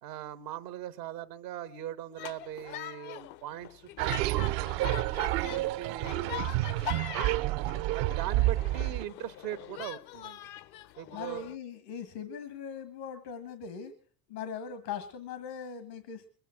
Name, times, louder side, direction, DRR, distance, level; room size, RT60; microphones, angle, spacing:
voice 1, 0.0-5.1 5.5-7.3 7.8-10.4 11.0-11.5, right 11 dB, 85° right, 11 dB, 1.1 m, -40 dB
sound 1, 2.2-11.6, left 15 dB, 55° left, 0.6 m, -43 dB
sound 2, 4.0-9.0, right 17 dB, 65° right, 0.6 m, -29 dB
voice 2, 11.1-13.9 14.3-16.3, left 7 dB, 80° left, 10 dB, 1.8 m, -40 dB
22.5 x 9.2 x 5.9 m, 0.43 s
hypercardioid pair, 70°, 48 cm